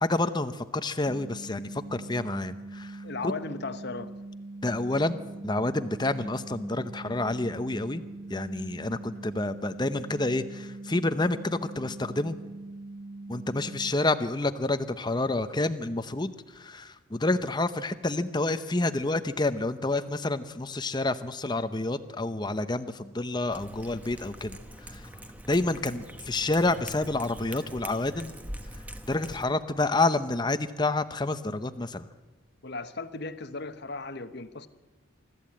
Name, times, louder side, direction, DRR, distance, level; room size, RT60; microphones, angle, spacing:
voice 1, 0.0-3.3 4.6-8.0 8.3-12.4 13.3-24.6 24.9-25.0 25.5-28.3 29.1-32.0, left 2 dB, 20° left, 0.7 m, -29 dB
sound 1, 1.1-13.9, right 2 dB, 30° right, 0.5 m, -42 dB
voice 2, 3.0-4.1 9.1-9.2 32.6-34.7, left 3 dB, 50° left, 1.0 m, -36 dB
Cat, 23.5-29.4, equal, 5° right, 1.0 m, -43 dB
24.5 x 13.5 x 8.6 m
head